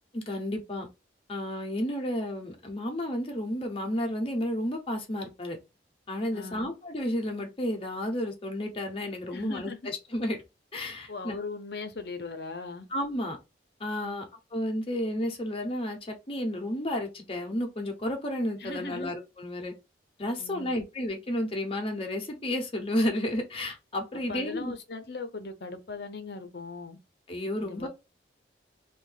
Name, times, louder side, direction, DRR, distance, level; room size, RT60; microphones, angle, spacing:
voice 1, 0.1-0.9 1.3-5.6 6.1-10.4 10.7-11.4 12.9-13.4 13.8-14.2 14.5-19.7 20.2-24.7 27.3-27.9, left 1 dB, 30° left, 0.8 m, -32 dB
voice 2, 6.3-6.7 9.3-9.8 11.1-12.9 14.0-14.2 18.6-19.1 20.4-20.9 24.1-27.0 27.6-27.9, left 4 dB, 60° left, 0.6 m, -39 dB
2.7 x 2.5 x 3.9 m
head